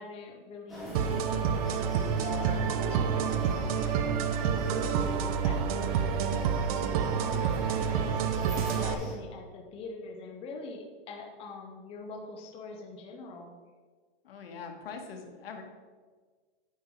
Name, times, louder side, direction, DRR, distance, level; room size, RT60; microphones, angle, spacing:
voice 1, 0.0-8.2 8.7-13.5, left 3 dB, 20° left, 2 dB, 0.8 m, -44 dB
sound 1, 0.7-9.1, equal, ahead, 2.1 m, -41 dB
sound 2, 0.9-8.9, right 7 dB, 40° right, 0.5 m, -28 dB
voice 2, 14.2-15.6, left 5 dB, 80° left, 3 dB, 1.7 m, -42 dB
9.1 x 5.2 x 4.7 m, 1.5 s
supercardioid pair, 155°, 29 cm